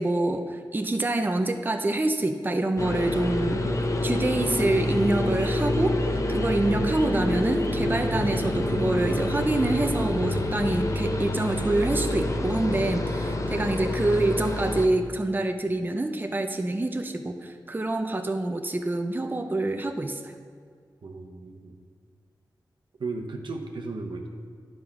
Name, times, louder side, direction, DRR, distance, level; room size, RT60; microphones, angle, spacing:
voice 1, 0.0-3.6 4.0-20.3, right 2 dB, 25° right, 6 dB, 0.6 m, -26 dB
sound 1, 2.8-14.9, left 1 dB, 40° left, 0.8 m, -27 dB
voice 2, 21.0-21.7 23.0-24.3, right 3 dB, 80° right, 2 dB, 0.9 m, -35 dB
9.8 x 5.2 x 5.9 m, 2.1 s
cardioid pair, 55°, 8 cm